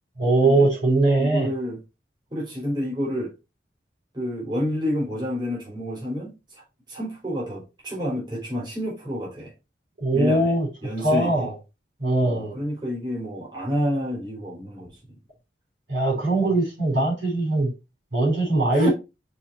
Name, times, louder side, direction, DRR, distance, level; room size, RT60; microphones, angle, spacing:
voice 1, 0.2-1.5 10.0-10.7 11.0-11.5 12.0-12.5 15.9-17.7 18.1-18.9, right 2 dB, 80° right, 4.4 m, -21 dB
voice 2, 1.2-1.8 2.3-3.3 4.1-9.5 10.1-10.5 10.8-11.5 12.2-15.2 18.7-18.9, equal, 25° right, 3.2 m, -29 dB
5.6 x 4.5 x 4.4 m
head